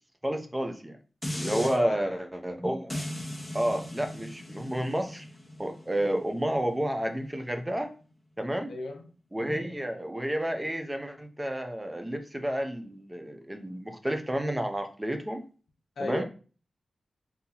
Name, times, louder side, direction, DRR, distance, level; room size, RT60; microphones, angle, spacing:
voice 1, 0.2-1.0 1.3-3.0 3.5-5.3 5.6-7.9 8.4-8.7 9.3-15.4 16.0-16.2, right 1 dB, 15° right, 0.4 m, -30 dB
sound 1, 1.2-1.8 2.9-8.0 8.5-8.6, left 1 dB, 10° left, 1.0 m, -39 dB
voice 2, 1.4-2.0 8.7-9.1 16.0-16.2, left 2 dB, 85° left, 0.5 m, -34 dB
3.8 x 2.7 x 2.8 m
wide cardioid pair, 120°, 0 cm